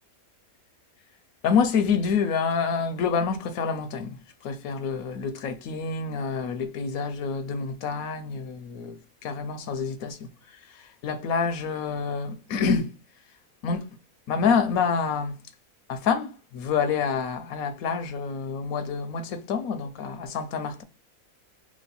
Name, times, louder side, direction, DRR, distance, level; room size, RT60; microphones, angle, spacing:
voice 1, 1.4-4.2 4.4-10.3 11.0-12.9 13.6-13.8 14.3-15.4 15.9-20.8, left 5 dB, 80° left, 1.1 m, -27 dB
3.1 x 3.0 x 4.1 m
omnidirectional pair, 1.5 m